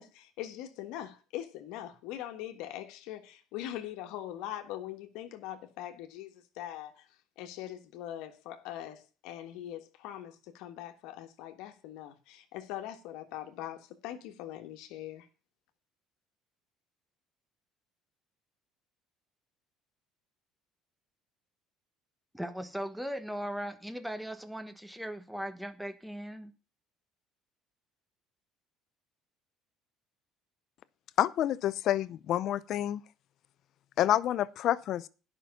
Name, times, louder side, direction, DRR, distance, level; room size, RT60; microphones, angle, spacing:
voice 1, 0.0-7.1 7.4-15.3, left 12 dB, 80° left, 1.4 m, -42 dB
voice 2, 22.3-26.5, equal, ahead, 1.1 m, -38 dB
voice 3, 31.2-33.0 34.0-35.1, left 12 dB, 60° left, 0.6 m, -28 dB
10.5 x 5.9 x 6.8 m
cardioid pair, 115°, 0 cm